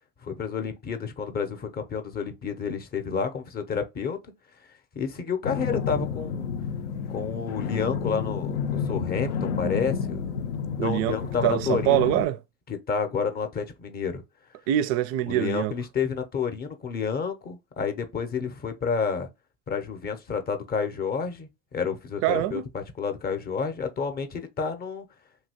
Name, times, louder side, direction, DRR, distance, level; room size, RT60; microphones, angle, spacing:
voice 1, 0.2-4.3 4.9-6.5 7.1-10.2 10.8-12.0 12.7-14.2 15.3-19.3 19.7-25.1, left 6 dB, 25° left, 0.6 m, -30 dB
sound 1, 5.4-12.2, left 6 dB, 75° left, 0.6 m, -30 dB
voice 2, 10.8-12.4 14.7-15.7 22.2-22.6, right 13 dB, 45° right, 0.4 m, -24 dB
2.9 x 2.7 x 2.8 m
hypercardioid pair, 90°, 36 cm